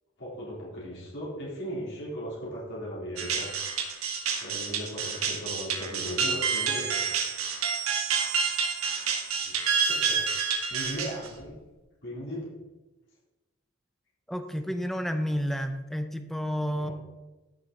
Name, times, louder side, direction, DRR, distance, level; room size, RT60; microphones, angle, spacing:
voice 1, 0.2-3.5 4.4-7.0 9.4-11.6 12.0-12.5 16.7-16.9, equal, 60° left, -6 dB, 3.9 m, -37 dB
sound 1, 3.2-11.4, right 6 dB, 90° right, 1.6 m, -28 dB
voice 2, 14.3-16.9, equal, ahead, 7 dB, 0.6 m, -30 dB
13.5 x 6.7 x 4.1 m, 1.1 s
head